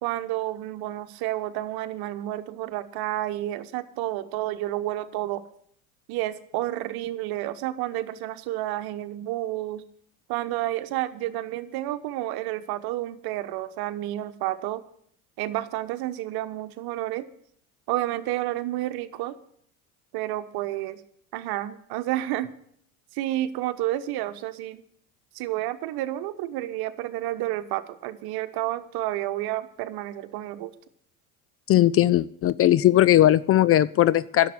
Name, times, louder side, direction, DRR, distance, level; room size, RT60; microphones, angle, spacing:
voice 1, 0.0-5.4 6.1-9.8 10.3-14.8 15.4-17.3 17.9-19.4 20.1-21.0 21.3-22.5 23.1-24.8 25.3-30.7, right 15 dB, 60° right, 11 dB, 1.1 m, -30 dB
voice 2, 31.7-34.5, left 13 dB, 35° left, 18 dB, 0.4 m, -19 dB
11.0 x 7.4 x 9.6 m, 0.66 s
hypercardioid pair, 75°, 43 cm